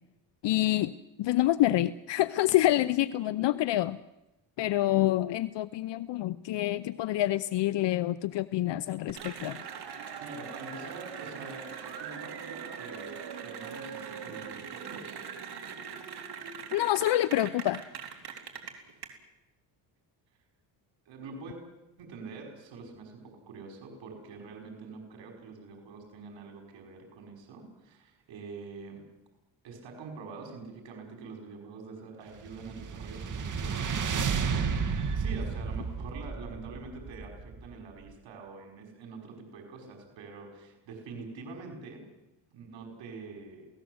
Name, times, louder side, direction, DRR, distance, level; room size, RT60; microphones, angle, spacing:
voice 1, 0.4-0.9 1.2-4.0 4.6-9.6 16.7-17.8, left 14 dB, 70° left, 15 dB, 0.7 m, -27 dB
Cheering / Applause, 9.1-19.1, right 7 dB, 60° right, 3.7 m, -41 dB
voice 2, 10.2-11.7 12.0-15.2 21.1-21.6 22.0-29.0 29.6-42.0 42.5-43.7, right 4 dB, 90° right, 2 dB, 5.3 m, -45 dB
sound 1, 32.4-37.8, right 5 dB, 45° right, 2.0 m, -32 dB
28.0 x 18.5 x 7.9 m, 0.99 s
cardioid pair, 110°, 44 cm